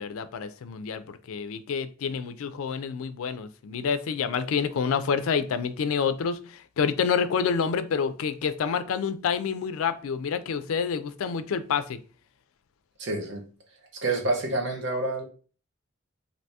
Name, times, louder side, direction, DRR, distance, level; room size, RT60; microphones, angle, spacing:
voice 1, 0.0-12.0, left 6 dB, 85° left, 0.4 m, -28 dB
voice 2, 13.0-13.5 13.9-15.2, right 2 dB, 55° right, 0.8 m, -28 dB
3.3 x 2.6 x 2.7 m
head